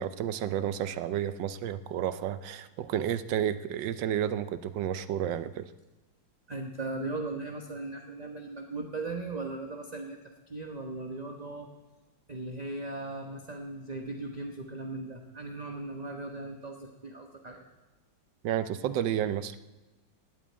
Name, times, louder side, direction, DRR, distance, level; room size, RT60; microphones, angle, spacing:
voice 1, 0.0-5.7 18.4-19.6, right 10 dB, 75° right, 14 dB, 1.3 m, -31 dB
voice 2, 6.5-10.2 10.5-11.7 12.3-17.6, right 2 dB, 30° right, 2 dB, 0.9 m, -38 dB
18.0 x 9.0 x 8.6 m, 1.1 s
omnidirectional pair, 2.1 m